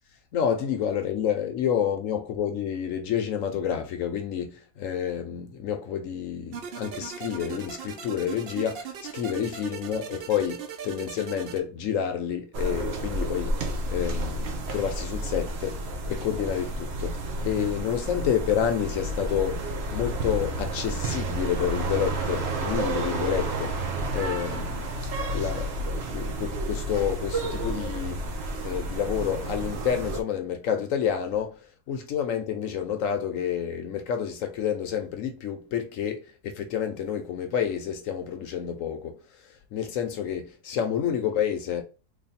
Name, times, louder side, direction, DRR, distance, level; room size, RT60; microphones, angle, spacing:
voice 1, 0.3-10.0 10.3-13.5 13.9-23.8 24.1-25.0 25.3-28.3 28.6-41.8, left 8 dB, 65° left, 1.0 m, -29 dB
sound 1, 6.5-11.6, right 7 dB, 80° right, 0.5 m, -38 dB
sound 2, 12.5-30.2, right 1 dB, 55° right, 0.8 m, -31 dB
3.2 x 2.3 x 4.1 m
omnidirectional pair, 1.6 m